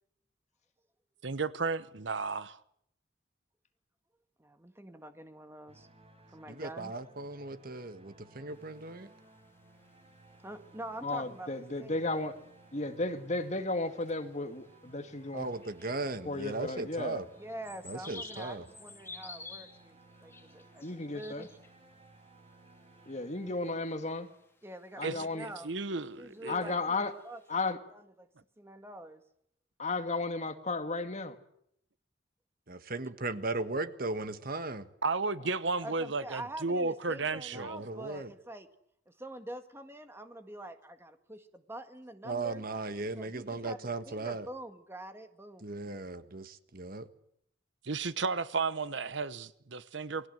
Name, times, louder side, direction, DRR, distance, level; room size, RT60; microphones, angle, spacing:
voice 1, 1.2-2.6 25.0-26.5 35.0-37.8 47.8-50.3, right 4 dB, 70° right, 1.0 m, -33 dB
voice 2, 4.4-5.9 6.3-6.9 10.4-11.5 11.8-12.0 17.4-20.9 21.1-21.5 24.6-25.7 26.2-28.3 28.6-29.2 35.8-38.7 39.1-42.6 43.2-45.7, right 1 dB, 15° right, 1.7 m, -45 dB
sound 1, 5.7-24.6, right 2 dB, 35° right, 4.6 m, -59 dB
voice 3, 6.5-9.1 15.3-17.2 17.8-18.7 32.7-34.9 37.5-38.3 42.2-44.5 45.6-47.1, right 3 dB, 50° right, 1.5 m, -37 dB
sound 2, 8.5-27.7, left 3 dB, 15° left, 2.8 m, -55 dB
voice 4, 11.0-12.3 12.7-15.5 16.2-17.2 20.8-21.5 23.1-24.3 25.0-25.5 26.5-27.1 27.5-27.8 29.8-31.4, left 2 dB, 40° left, 2.0 m, -34 dB
28.0 x 20.5 x 7.8 m
head